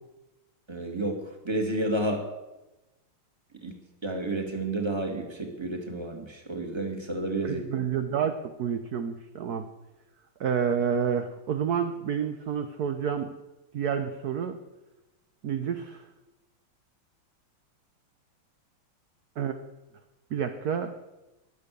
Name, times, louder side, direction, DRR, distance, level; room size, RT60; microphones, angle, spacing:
voice 1, 0.7-2.2 3.6-3.7 4.0-7.6, right 2 dB, 15° right, 3 dB, 2.2 m, -31 dB
voice 2, 7.4-9.7 10.4-13.3 13.7-14.6 15.4-16.0 19.4-19.5 20.3-20.9, right 7 dB, 55° right, 7 dB, 1.2 m, -29 dB
22.0 x 8.1 x 6.8 m, 1.0 s
omnidirectional pair, 2.3 m